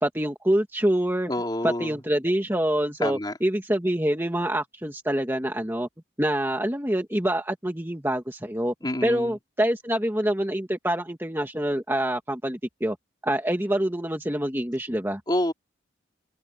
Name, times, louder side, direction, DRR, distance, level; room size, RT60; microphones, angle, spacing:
voice 1, 0.0-1.3 1.6-5.9 6.2-8.7 9.0-13.0 13.2-15.2, right 1 dB, 10° right, 1.8 m, -26 dB
voice 2, 1.3-1.9 3.0-3.3 8.8-9.4 15.3-15.5, left 1 dB, 20° left, 3.9 m, -27 dB
head